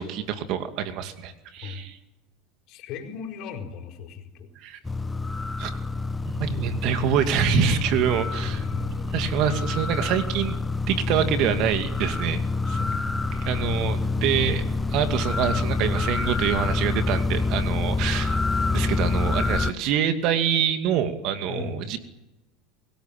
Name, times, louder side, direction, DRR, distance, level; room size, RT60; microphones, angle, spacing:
voice 1, 0.0-2.0 4.6-4.8 5.6-5.7 6.2-8.6 9.1-10.6 10.9-12.4 12.7-12.8 13.3-14.6 14.9-18.4 18.7-22.0, right 9 dB, 55° right, 8 dB, 2.4 m, -26 dB
voice 2, 2.7-4.5 7.4-7.8 8.4-9.2 12.7-13.3 21.5-21.9, left 7 dB, 55° left, 3 dB, 4.8 m, -35 dB
sound 1, 4.8-19.7, left 3 dB, 10° left, 1.0 m, -27 dB
25.0 x 17.0 x 9.0 m, 0.98 s
hypercardioid pair, 90°, 0 cm